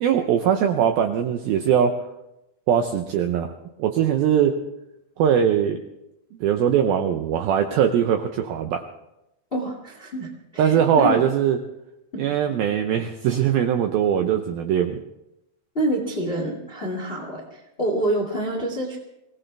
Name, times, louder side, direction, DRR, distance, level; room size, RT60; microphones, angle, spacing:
voice 1, 0.0-2.0 2.7-3.5 3.8-4.5 5.2-5.8 6.4-8.8 10.6-11.6 12.2-15.0, right 9 dB, 80° right, 6 dB, 2.1 m, -21 dB
voice 2, 9.5-11.2 12.1-12.3 15.7-19.0, right 1 dB, 55° left, 1 dB, 0.6 m, -27 dB
23.5 x 18.0 x 3.4 m, 0.89 s
omnidirectional pair, 5.3 m